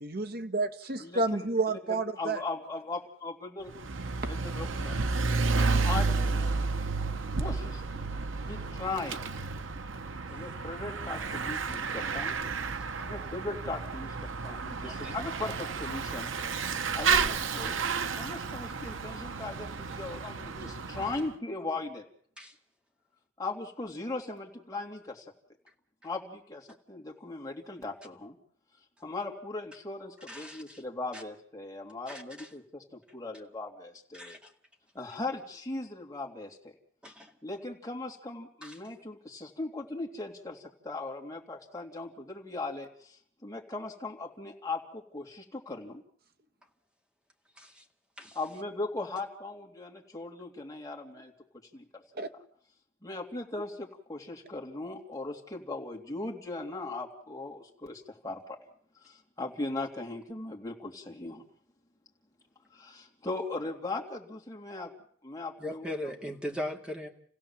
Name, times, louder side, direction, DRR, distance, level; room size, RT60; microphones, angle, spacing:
voice 1, 0.0-2.4 52.1-52.3, right 3 dB, 50° right, 8 dB, 1.4 m, -30 dB
voice 2, 1.0-1.4 1.9-3.7 4.3-5.0 5.5-6.5 7.4-8.1 8.4-9.3 10.3-12.3 13.0-16.3 16.9-17.8 18.1-22.1 23.4-25.2 26.0-28.4 29.0-34.4 34.9-36.7 37.4-46.0 48.3-51.3 51.7-52.0 52.3-52.4 53.0-58.6 59.0-61.4 62.7-64.9 65.2-66.1, left 2 dB, 20° left, 0 dB, 3.2 m, -38 dB
Bicycle / Mechanisms, 3.7-21.3, right 4 dB, 85° right, 1.0 m, -31 dB
voice 3, 14.8-15.1 22.4-22.5 30.3-30.8 31.1-31.2 32.1-32.5 34.1-34.5 37.0-37.3 38.6-38.8 47.6-47.8 48.2-48.4 65.6-67.1, left 1 dB, 5° right, 3 dB, 2.1 m, -39 dB
29.0 x 16.5 x 7.4 m, 0.62 s
head